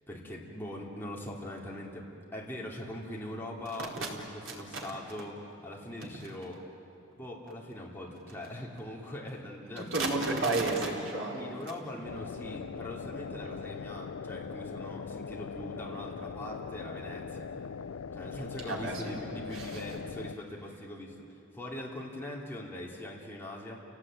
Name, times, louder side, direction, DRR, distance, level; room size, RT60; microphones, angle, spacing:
voice 1, 0.1-6.6 7.2-10.3 11.3-17.5 18.1-23.8, left 1 dB, 10° left, -3 dB, 3.0 m, -42 dB
voice 2, 3.8-4.1 4.5-4.6 4.8-4.9 9.8-11.5 18.7-19.2 19.5-19.8, right 2 dB, 75° right, -2 dB, 4.3 m, -32 dB
sound 1, 12.0-20.4, left 5 dB, 85° left, 0.5 m, -41 dB
29.5 x 17.5 x 8.9 m, 2.7 s
head